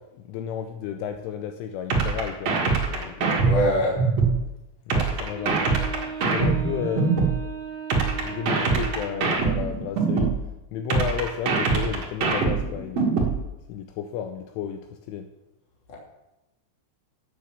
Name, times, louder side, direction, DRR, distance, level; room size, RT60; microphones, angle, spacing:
voice 1, 0.1-3.5 4.9-5.6 6.2-7.2 8.2-10.4 10.7-13.1 13.7-15.3, left 8 dB, 80° left, 6 dB, 3.0 m, -33 dB
sound 1, 1.9-4.4 4.9-7.4 7.9-10.4 10.9-13.4, right 4 dB, 65° right, 1.6 m, -23 dB
voice 2, 3.4-4.0 15.9-16.0, equal, 30° left, -3 dB, 2.3 m, -23 dB
Wind instrument woodwind instrument, 5.3-9.4, right 6 dB, 35° right, 1.9 m, -37 dB
9.5 x 7.9 x 7.3 m, 0.97 s
omnidirectional pair, 6.0 m